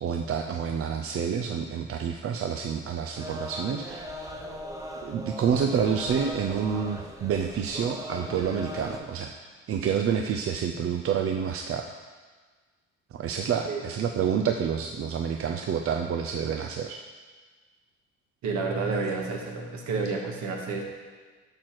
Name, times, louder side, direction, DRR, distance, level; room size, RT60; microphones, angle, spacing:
voice 1, 0.0-4.1 5.0-9.4 9.7-11.9 13.1-17.0, right 7 dB, 45° right, 4 dB, 0.6 m, -28 dB
sound 1, 3.1-9.0, equal, 10° right, 1.0 m, -39 dB
voice 2, 18.4-20.8, right 4 dB, 65° right, 0 dB, 1.8 m, -30 dB
8.7 x 6.1 x 4.8 m, 1.5 s
cardioid pair, 90°, 31 cm